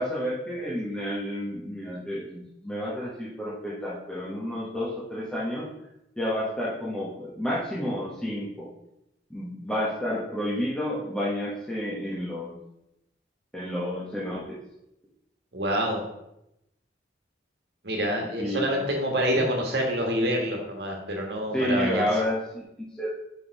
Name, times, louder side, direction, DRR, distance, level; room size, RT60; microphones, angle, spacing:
voice 1, 0.0-5.7 6.2-8.7 9.3-12.5 13.5-14.6 18.4-18.7 21.5-23.1, equal, 5° left, -7 dB, 1.1 m, -30 dB
voice 2, 15.5-16.0 17.8-22.0, equal, 70° right, 1 dB, 1.5 m, -27 dB
5.4 x 4.7 x 4.6 m, 0.85 s
head